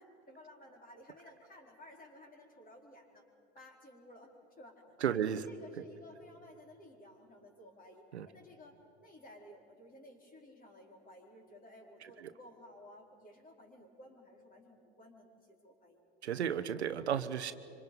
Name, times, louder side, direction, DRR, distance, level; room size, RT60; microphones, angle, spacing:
voice 1, 0.0-3.2 3.5-4.8 5.1-16.1, left 1 dB, 25° left, 2 dB, 4.3 m, -56 dB
voice 2, 5.0-5.4 8.1-8.3 12.2-12.3 16.2-17.5, right 9 dB, 85° right, 11 dB, 0.9 m, -33 dB
25.5 x 25.5 x 5.4 m, 2.7 s
hypercardioid pair, 80°, 32 cm